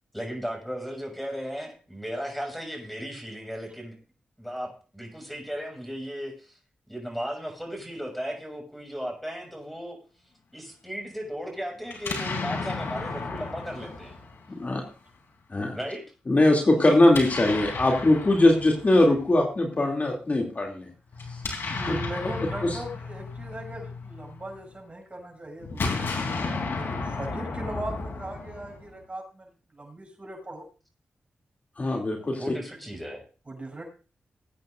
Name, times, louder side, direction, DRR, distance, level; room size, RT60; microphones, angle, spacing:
voice 1, 0.1-3.9 4.4-6.6 6.9-10.0 10.5-14.2 15.7-16.1 32.4-33.2, equal, ahead, 1 dB, 6.2 m, -36 dB
Explosion, 11.9-14.9 17.0-19.2 21.1-24.6 25.6-29.0, left 4 dB, 75° left, 3.4 m, -33 dB
voice 2, 16.3-20.9 21.9-22.0 22.6-22.7 31.8-32.4, left 1 dB, 40° left, 0 dB, 2.9 m, -21 dB
voice 3, 21.6-30.6 33.5-33.8, right 1 dB, 30° right, 0 dB, 7.6 m, -39 dB
21.5 x 9.2 x 2.6 m, 0.36 s
cardioid pair, 60°, 4 cm